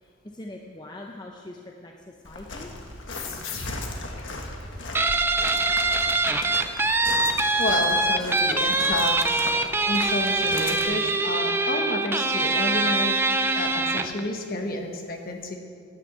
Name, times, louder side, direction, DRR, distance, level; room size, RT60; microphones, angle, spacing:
voice 1, 0.0-2.7, left 1 dB, 20° left, 0 dB, 0.7 m, -42 dB
Walk footsteps, 2.2-10.8, left 2 dB, 65° left, 1.5 m, -38 dB
sound 1, 3.1-6.3, left 2 dB, 90° left, 1.6 m, -38 dB
Guitar, 4.9-14.2, right 2 dB, 10° right, 0.4 m, -23 dB
voice 2, 7.6-9.5 9.9-13.1 13.5-15.6, left 2 dB, 45° left, 2 dB, 1.5 m, -30 dB
11.0 x 9.1 x 8.1 m, 2.2 s
head